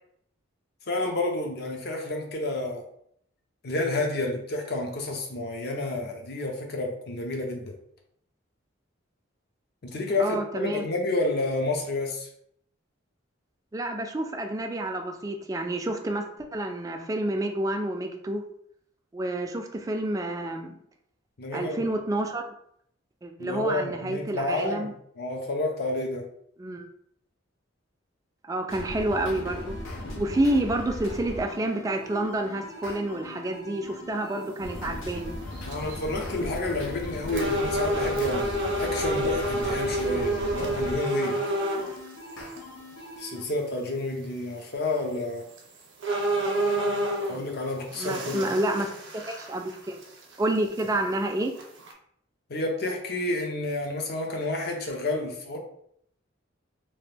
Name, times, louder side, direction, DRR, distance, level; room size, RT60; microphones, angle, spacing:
voice 1, 0.9-2.8 3.6-7.7 9.8-12.3 21.4-21.8 23.4-24.9 25.2-26.3 35.7-41.4 43.2-45.5 47.3-48.4 52.5-55.6, left 2 dB, 55° left, 2 dB, 0.6 m, -30 dB
voice 2, 10.2-10.8 13.7-16.3 16.5-18.4 19.1-20.8 21.5-22.5 23.2-24.9 26.6-26.9 28.4-29.8 30.2-35.3 48.0-48.9 49.3-50.0 50.4-51.6, right 1 dB, 15° right, 4 dB, 0.3 m, -29 dB
sound 1, 28.7-43.4, left 1 dB, 85° left, 0.7 m, -38 dB
sound 2, 34.9-35.0 35.5-35.9 36.6-36.7 37.3-41.9 42.6-42.7 45.0-45.1 45.6-45.7 46.0-47.5 47.9-49.7 50.0-50.1 50.8-50.9 51.6-51.9, right 1 dB, 65° right, 0.7 m, -28 dB
2.9 x 2.4 x 3.3 m, 0.69 s
head